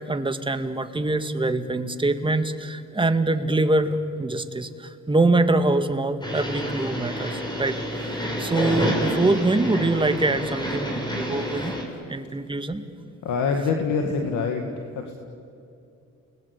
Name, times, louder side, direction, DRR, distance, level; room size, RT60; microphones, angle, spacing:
voice 1, 0.1-7.8 8.4-11.7 12.1-12.9, right 2 dB, 15° right, 9 dB, 1.8 m, -24 dB
sound 1, 6.2-11.8, equal, 15° left, 5.8 m, -29 dB
voice 2, 13.2-14.7 14.9-15.1, left 5 dB, 75° left, 4 dB, 2.2 m, -25 dB
29.5 x 20.5 x 8.4 m, 2.6 s
cardioid pair, 90°, 30 cm